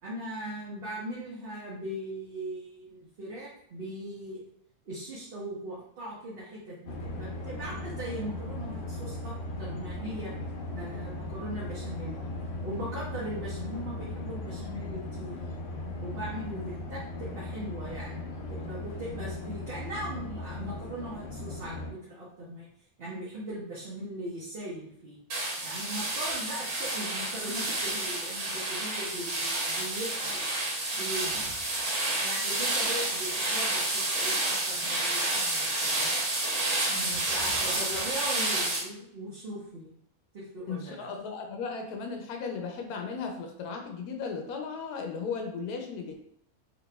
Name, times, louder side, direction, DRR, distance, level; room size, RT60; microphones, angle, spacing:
voice 1, 0.0-4.4 4.9-10.3 10.7-12.2 12.6-15.4 16.0-18.2 18.5-22.7 23.0-25.2 25.6-30.4 30.9-31.7 32.2-36.1 36.6-39.9 40.3-41.1, right 1 dB, 50° right, -7 dB, 0.9 m, -39 dB
sound 1, 6.9-21.9, left 2 dB, 65° left, 0.9 m, -38 dB
sound 2, 25.3-38.8, right 2 dB, 80° right, 1.3 m, -30 dB
voice 2, 40.7-46.2, left 5 dB, 85° left, 3 dB, 1.1 m, -36 dB
4.0 x 3.0 x 2.2 m, 0.72 s
omnidirectional pair, 1.6 m